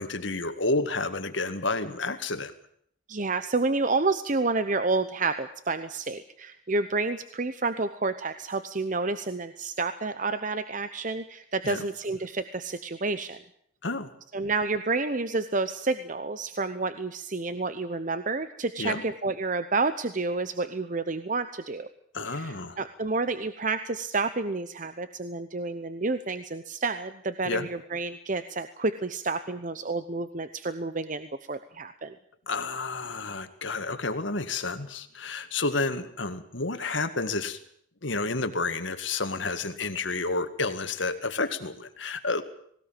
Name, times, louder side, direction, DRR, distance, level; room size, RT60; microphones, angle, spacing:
voice 1, 0.0-2.5 11.6-11.8 13.8-14.1 18.8-19.0 22.1-22.8 27.4-27.7 32.5-37.6 38.0-42.4, left 3 dB, 70° left, 9 dB, 2.0 m, -30 dB
voice 2, 3.1-13.4 14.3-21.9 22.3-32.2 36.8-36.9, right 3 dB, 40° right, 11 dB, 0.9 m, -29 dB
19.5 x 18.5 x 9.1 m, 0.67 s
head